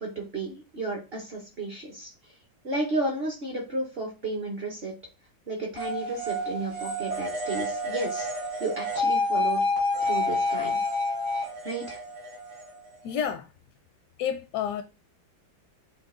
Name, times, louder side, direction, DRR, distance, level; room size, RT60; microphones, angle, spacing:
voice 1, 0.0-2.3 2.6-4.9 5.5-8.3 8.6-9.6 10.0-10.8 11.6-12.0, right 2 dB, 50° right, 0.7 m, -33 dB
sound 1, 5.8-13.3, left 2 dB, 70° right, 3.1 m, -29 dB
voice 2, 13.0-13.5 14.2-14.8, left 8 dB, 75° left, 0.9 m, -29 dB
6.1 x 2.3 x 3.6 m
omnidirectional pair, 2.1 m